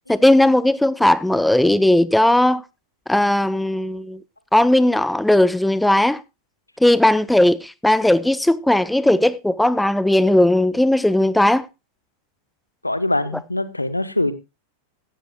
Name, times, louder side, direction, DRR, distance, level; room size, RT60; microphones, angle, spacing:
voice 1, 0.1-2.6 3.1-4.2 4.5-6.2 6.8-11.7, left 1 dB, 5° left, 0.6 m, -17 dB
voice 2, 12.8-14.3, left 2 dB, 85° left, 1.2 m, -23 dB
16.0 x 13.0 x 2.3 m
figure-of-eight pair, 90°, 0 cm